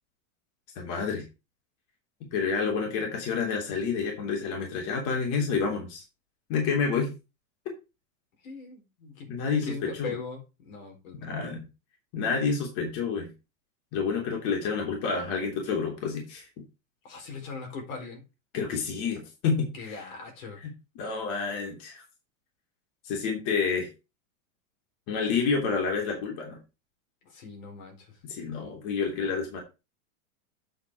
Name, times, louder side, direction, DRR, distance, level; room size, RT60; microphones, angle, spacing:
voice 1, 0.7-1.2 2.3-6.0 6.5-7.1 9.3-10.1 11.2-11.7 12.1-13.3 13.9-16.5 18.5-20.0 20.6-22.0 23.0-23.9 25.1-26.6 28.3-29.6, left 5 dB, 45° left, 3.2 m, -29 dB
voice 2, 8.4-9.3 9.6-11.3 17.0-18.2 19.7-20.6 27.2-28.2, left 5 dB, 70° left, 4.3 m, -40 dB
8.4 x 5.9 x 4.7 m
supercardioid pair, 145°, 42 cm